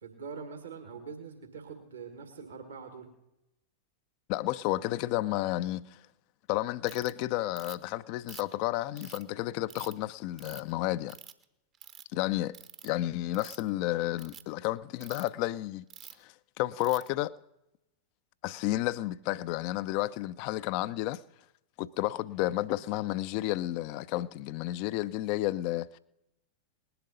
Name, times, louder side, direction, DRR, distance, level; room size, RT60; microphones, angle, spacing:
voice 1, 0.0-3.1, right 5 dB, 70° right, 1.8 m, -44 dB
voice 2, 4.3-6.0 6.5-11.2 12.1-12.6 12.8-15.8 16.2-17.3 18.4-21.2 21.8-26.0, left 16 dB, 45° left, 0.5 m, -31 dB
Ratchet pawl, 6.9-7.1 7.6-7.9 8.3-9.2 9.7-9.9 10.4-10.7 11.1-11.4 11.7-12.0 12.5-12.9 13.3-13.7 14.1-14.4 15.0-15.3 15.9-16.2 16.8-17.1, right 9 dB, 30° right, 0.9 m, -48 dB
19.5 x 11.0 x 4.0 m
figure-of-eight pair, 90°, 0 cm